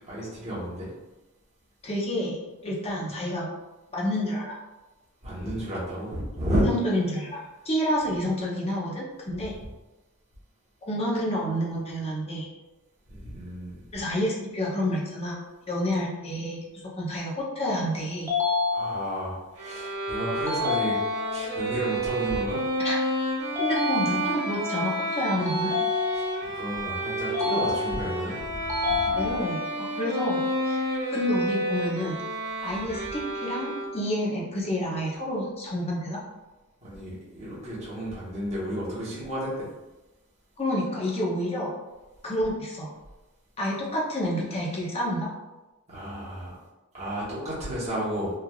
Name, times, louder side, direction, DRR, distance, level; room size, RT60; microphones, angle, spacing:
voice 1, 0.1-0.9 5.2-6.7 13.1-13.8 18.7-20.9 21.3-22.6 26.1-29.1 36.8-39.7 45.9-46.5 46.9-48.3, equal, 30° right, -8 dB, 1.0 m, -32 dB
voice 2, 1.8-2.4 2.6-3.5 3.9-4.5 6.6-9.6 10.8-12.5 13.9-15.4 15.7-18.3 22.8-23.0 23.6-25.8 29.2-29.6 29.9-32.2 32.6-36.2 40.6-41.7 42.2-42.9 43.6-45.3, equal, 30° left, -4 dB, 0.6 m, -29 dB
sound 1, 18.3-19.3 20.5-21.5 23.6-24.6 25.5-26.5 27.3-28.2 28.7-29.7, left 4 dB, 15° right, 0.5 m, -28 dB
Bowed string instrument, 19.6-34.2, right 1 dB, 75° right, 0.8 m, -30 dB
3.1 x 2.4 x 2.3 m, 1.1 s
head